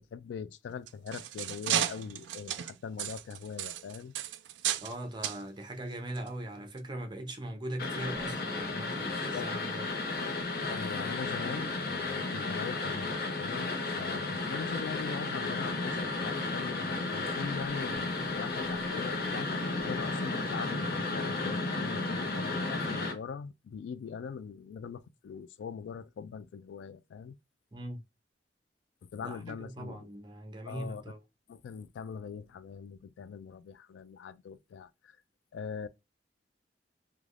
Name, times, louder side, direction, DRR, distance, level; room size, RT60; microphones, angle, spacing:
voice 1, 0.0-4.1 9.0-9.5 10.7-27.4 29.1-30.1 30.7-31.0 31.5-35.2 35.5-35.9, left 6 dB, 90° left, 0.3 m, -42 dB
sound 1, 0.7-4.9 5.2-5.4 6.1-6.3 6.8-6.9, right 11 dB, 85° right, 0.3 m, -34 dB
voice 2, 4.8-9.9 27.7-28.0 29.2-31.2, right 1 dB, 25° right, 0.6 m, -40 dB
sound 2, 7.8-23.1, left 3 dB, 60° left, 0.7 m, -33 dB
sound 3, 17.7-18.0 18.6-20.1 20.4-21.0, left 4 dB, 15° left, 1.0 m, -52 dB
3.2 x 2.3 x 2.4 m
head